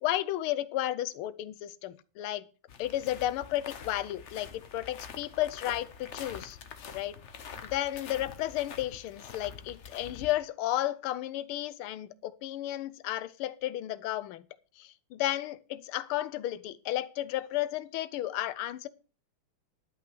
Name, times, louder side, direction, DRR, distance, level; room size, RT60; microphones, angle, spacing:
voice 1, 0.0-2.5 2.8-6.6 6.9-7.1 7.6-14.4 14.8-18.9, left 14 dB, 80° left, 1.5 m, -33 dB
sound 1, 2.7-10.3, left 6 dB, 50° left, 0.8 m, -46 dB
11.5 x 5.8 x 6.1 m
omnidirectional pair, 2.4 m